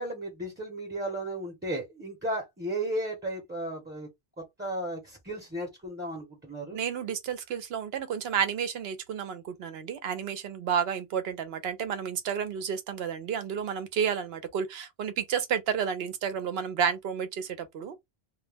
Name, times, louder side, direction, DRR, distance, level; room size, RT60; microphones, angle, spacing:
voice 1, 0.0-4.1 4.4-6.8, right 1 dB, 10° right, 0.7 m, -34 dB
voice 2, 6.7-18.0, right 7 dB, 70° right, 0.8 m, -31 dB
2.2 x 2.1 x 3.3 m
omnidirectional pair, 1.1 m